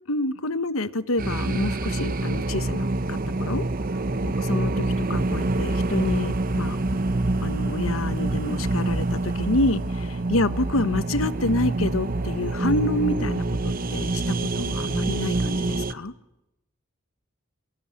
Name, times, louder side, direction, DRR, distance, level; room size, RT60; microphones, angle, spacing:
voice 1, 0.1-3.6 4.2-6.8 7.4-16.1, left 2 dB, 80° left, 1.2 m, -28 dB
sound 1, 1.2-15.9, right 2 dB, 45° right, 0.9 m, -26 dB
sound 2, 5.3-13.5, right 1 dB, 10° right, 5.6 m, -50 dB
25.5 x 23.0 x 9.9 m
head